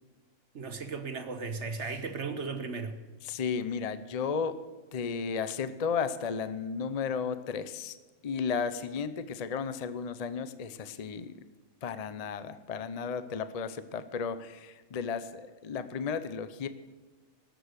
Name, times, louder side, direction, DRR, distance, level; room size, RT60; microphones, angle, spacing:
voice 1, 0.5-3.0, right 4 dB, 55° right, 7 dB, 1.4 m, -36 dB
voice 2, 3.2-4.6 4.9-8.0 8.2-11.4 11.8-16.7, left 6 dB, 35° left, 12 dB, 0.6 m, -34 dB
19.0 x 7.8 x 6.5 m, 1.3 s
omnidirectional pair, 1.5 m